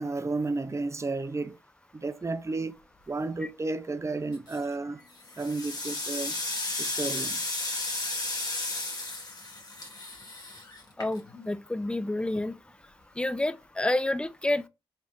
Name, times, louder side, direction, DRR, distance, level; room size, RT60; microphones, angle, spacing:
voice 1, 0.0-1.6 1.9-2.7 3.1-5.0 5.4-6.4 6.8-7.4, right 3 dB, 30° right, 0.6 m, -32 dB
sound 1, 4.3-4.7 5.2-11.5, left 2 dB, 40° left, 1.8 m, -34 dB
voice 2, 11.0-12.5 13.2-14.7, left 1 dB, 10° left, 0.5 m, -29 dB
4.4 x 3.4 x 3.1 m
cardioid pair, 60°, 10 cm